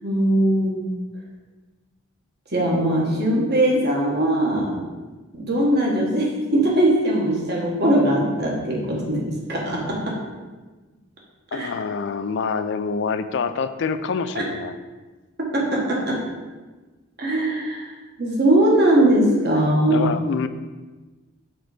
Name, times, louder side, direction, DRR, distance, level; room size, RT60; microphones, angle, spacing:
voice 1, 0.0-0.9 2.5-4.7 5.3-10.2 11.5-11.7 14.3-14.4 15.5-16.2 17.2-17.9 18.2-20.1, right 1 dB, 45° right, -3 dB, 1.5 m, -20 dB
voice 2, 11.5-14.8 19.9-20.5, left 5 dB, 55° left, 11 dB, 0.3 m, -26 dB
6.0 x 3.9 x 5.0 m, 1.3 s
head